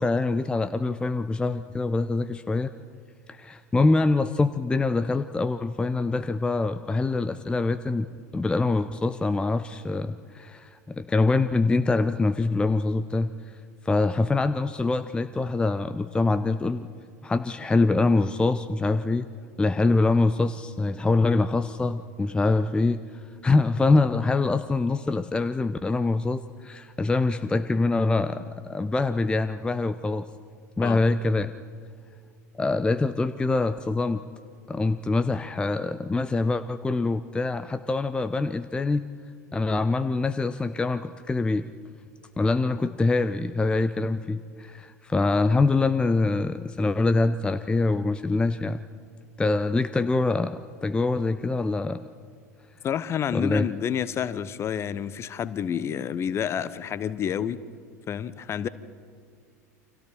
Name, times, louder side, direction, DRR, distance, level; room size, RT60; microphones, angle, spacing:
voice 1, 0.0-2.7 3.3-8.1 8.3-13.3 13.8-16.9 17.2-19.3 19.6-23.0 23.4-30.3 30.8-31.5 32.5-34.2 34.7-39.0 39.5-41.7 42.4-48.8 49.4-52.0 53.3-53.7, left 3 dB, 10° left, 12 dB, 0.6 m, -24 dB
voice 2, 52.8-57.6 58.1-58.7, left 8 dB, 30° left, 17 dB, 0.9 m, -29 dB
29.5 x 25.0 x 4.5 m, 2.1 s
figure-of-eight pair, 80°, 9 cm